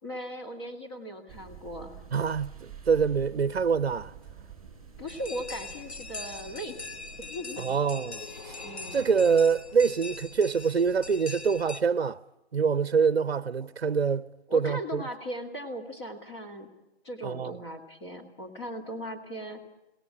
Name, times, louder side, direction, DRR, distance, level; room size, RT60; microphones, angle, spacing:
voice 1, 0.0-2.0 5.0-6.9 7.2-7.8 8.6-9.1 13.6-13.7 14.5-16.7 17.0-19.6, equal, 25° left, 2.4 m, -38 dB
sound 1, 1.3-7.3, right 7 dB, 5° left, 4.3 m, -48 dB
voice 2, 2.1-4.1 7.6-8.6 8.9-12.2 12.5-14.3 14.5-15.0 17.2-17.6, right 6 dB, 65° right, 0.8 m, -25 dB
sound 2, 5.1-11.8, left 3 dB, 85° left, 1.3 m, -42 dB
sound 3, 7.5-11.5, left 2 dB, 45° left, 1.9 m, -49 dB
23.0 x 18.0 x 9.8 m
figure-of-eight pair, 160°, 32 cm